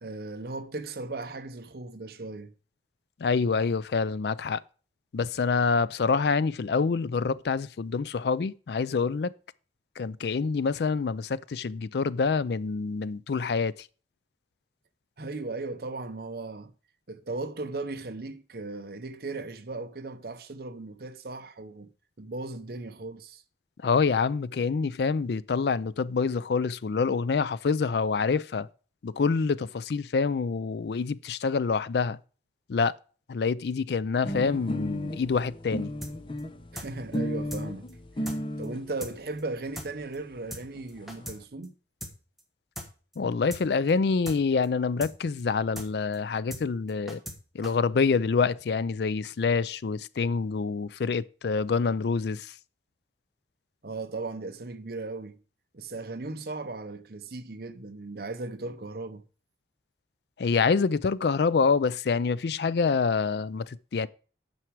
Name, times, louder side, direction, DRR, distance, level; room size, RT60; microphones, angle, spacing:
voice 1, 0.0-2.5 15.2-16.7 17.1-21.9 22.2-23.4 36.7-37.9 38.6-41.7 53.8-55.4 55.7-59.2, right 3 dB, 60° right, 0.8 m, -37 dB
voice 2, 3.2-4.6 5.1-9.3 10.0-13.7 23.8-28.7 29.0-32.2 32.7-32.9 33.3-35.9 43.2-47.2 47.5-52.5 60.4-64.1, left 5 dB, 65° left, 0.4 m, -26 dB
sound 1, 34.2-38.8 39.7-39.8 40.0-40.1 40.4-40.5 40.6-41.3, equal, 30° left, 0.8 m, -34 dB
sound 2, 36.0-36.1 36.4-36.5 36.8-36.9 37.1-37.2 37.5-37.6 37.9-38.0 38.3-38.4 38.6-38.7 39.0-39.1 39.4-39.5 39.8-39.9 40.1-40.2 40.5-40.6 40.9-41.4 41.6-41.7 42.0-42.1 42.4-42.5 42.8-42.9 43.1-43.2 43.5-43.6 43.9-44.0 44.3-44.4 44.6-44.7 45.0-45.1 45.4-45.5 45.8-45.9 46.1-46.2 46.5-46.6 46.9-47.4 47.6-47.7, equal, ahead, 1.4 m, -39 dB
9.1 x 6.0 x 4.7 m
head